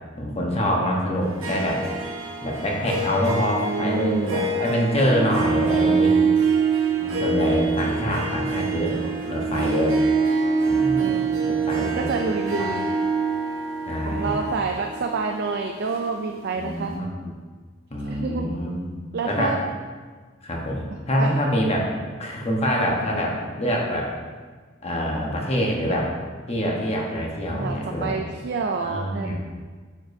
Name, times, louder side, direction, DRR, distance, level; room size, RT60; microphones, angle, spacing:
voice 1, 0.2-1.8 2.4-6.2 7.0-8.9 9.2-10.0 10.7-11.2 11.4-12.1 12.6-12.7 13.9-14.5 16.6-17.3 17.9-19.0 19.2-19.5 20.4-21.8 22.2-24.1 24.8-26.1 26.5-28.1 28.8-29.4, equal, 30° left, -2 dB, 1.1 m, -25 dB
Harp, 1.2-16.6, right 4 dB, 80° right, 1.0 m, -25 dB
voice 2, 3.6-4.4 5.9-6.4 8.9-9.7 11.0-12.9 14.0-16.9 18.1-18.6 19.1-19.6 21.2-21.4 27.5-27.8 28.0-29.4, right 4 dB, 50° right, 3 dB, 0.4 m, -29 dB
8.7 x 5.1 x 2.7 m, 1.5 s
head